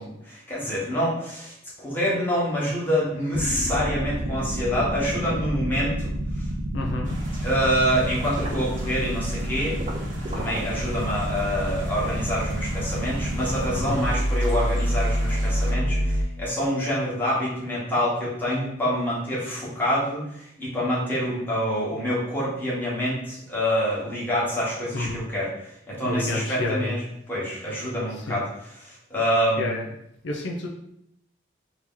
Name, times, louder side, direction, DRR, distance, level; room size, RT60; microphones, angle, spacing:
voice 1, 0.0-6.4 7.4-9.8 10.3-29.8, equal, 10° left, -7 dB, 1.2 m, -26 dB
sound 1, 3.3-16.2, equal, 35° right, 0.5 m, -27 dB
voice 2, 6.7-7.2 13.7-14.0 24.9-25.2 26.0-26.9 28.3-28.4 29.6-29.8 30.2-30.7, left 2 dB, 70° left, 0 dB, 0.5 m, -29 dB
Amb.Exterior estero y pajaros, 7.0-15.7, right 2 dB, 70° right, 0.9 m, -44 dB
3.0 x 2.8 x 3.7 m, 0.76 s
head